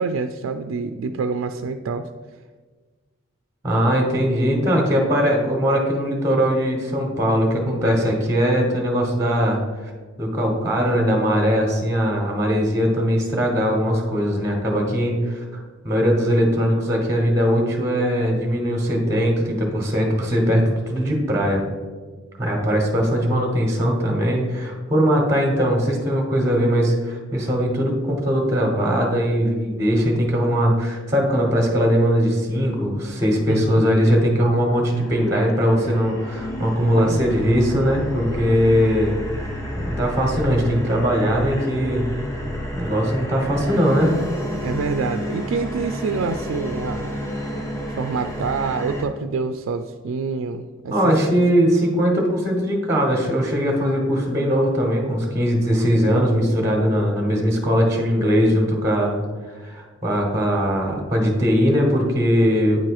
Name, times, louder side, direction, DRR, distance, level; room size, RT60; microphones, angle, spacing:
voice 1, 0.0-2.1 33.5-33.8 36.8-37.5 44.6-47.3 48.0-51.2, right 4 dB, 80° right, 7 dB, 0.3 m, -27 dB
voice 2, 3.6-9.9 10.2-21.6 22.4-39.1 39.7-42.0 42.7-44.1 50.9-62.8, equal, 15° right, 0 dB, 1.1 m, -20 dB
sound 1, 34.9-49.1, equal, 15° left, 0.7 m, -30 dB
9.0 x 3.1 x 4.7 m, 1.4 s
head